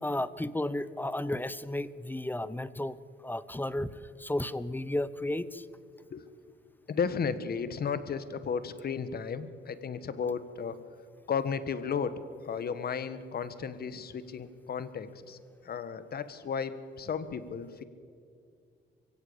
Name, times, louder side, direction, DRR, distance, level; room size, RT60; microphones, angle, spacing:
voice 1, 0.0-3.0 3.2-3.9 4.2-5.6, left 1 dB, 10° left, 16 dB, 0.8 m, -33 dB
voice 2, 6.9-10.8 11.3-15.4 15.6-17.8, left 6 dB, 50° left, 13 dB, 1.4 m, -34 dB
23.5 x 16.0 x 8.7 m, 2.3 s
cardioid pair, 90°, 20 cm